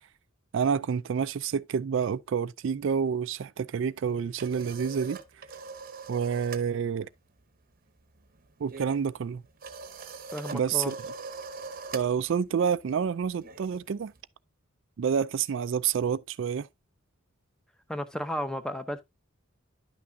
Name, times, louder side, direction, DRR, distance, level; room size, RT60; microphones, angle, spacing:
voice 1, 0.5-5.2 6.1-7.1 8.6-9.4 10.5-11.0 11.9-14.1 15.0-16.7, right 7 dB, 65° right, 0.4 m, -28 dB
sound 1, 4.0-6.7 7.0-7.3 7.5-14.2, right 4 dB, 45° right, 0.9 m, -43 dB
voice 2, 10.3-10.9 17.9-19.0, equal, 5° left, 0.7 m, -33 dB
10.5 x 6.0 x 2.6 m
head